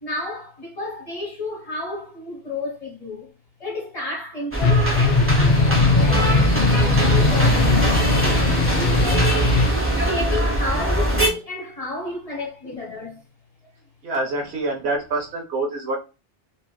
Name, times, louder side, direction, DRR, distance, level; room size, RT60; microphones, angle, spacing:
voice 1, 0.0-3.3 3.6-9.6 10.0-13.2, left 2 dB, 35° left, 1.3 m, -32 dB
sound 1, 4.5-11.3, right 1 dB, 15° right, 0.6 m, -22 dB
sound 2, 4.6-9.7, left 3 dB, 55° left, 0.4 m, -19 dB
voice 2, 14.0-16.0, right 2 dB, 75° right, 1.0 m, -26 dB
3.0 x 2.4 x 2.2 m
omnidirectional pair, 1.1 m